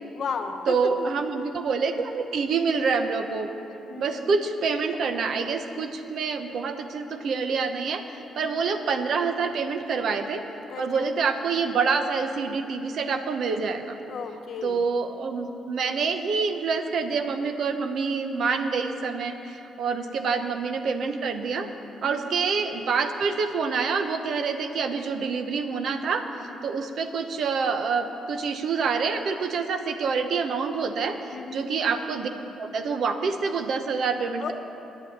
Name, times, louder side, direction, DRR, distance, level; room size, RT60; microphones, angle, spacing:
voice 1, 0.1-1.1 3.9-4.3 8.2-8.5 10.6-11.1 14.0-14.8 19.8-20.2 22.0-22.4 26.4-26.7 31.3-31.6 34.4-34.5, left 5 dB, 60° left, 6 dB, 1.0 m, -35 dB
voice 2, 0.7-3.5 4.0-10.4 10.8-14.0 14.6-21.7 22.0-32.3 32.6-34.5, right 5 dB, 65° right, 7 dB, 0.8 m, -27 dB
9.6 x 8.3 x 8.7 m, 2.9 s
cardioid pair, 90°, 0 cm